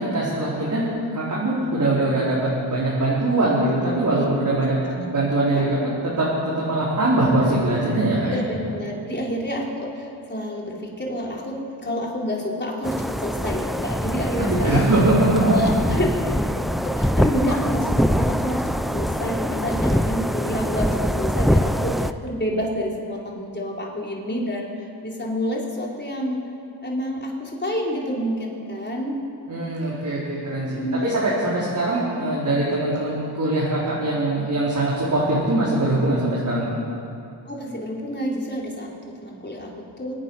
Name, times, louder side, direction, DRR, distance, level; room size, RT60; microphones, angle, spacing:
voice 1, 0.1-2.4 2.7-4.7 5.1-5.8 6.0-8.4 14.4-15.4 29.5-36.7, right 2 dB, 40° right, -8 dB, 4.5 m, -22 dB
voice 2, 8.3-14.9 15.4-16.1 16.5-26.4 26.8-29.2 30.7-31.2 37.4-40.2, equal, 25° left, -3 dB, 4.2 m, -28 dB
sound 1, 12.8-22.1, equal, ahead, 0.5 m, -23 dB
25.5 x 9.1 x 5.7 m, 2.6 s
cardioid pair, 65°, 46 cm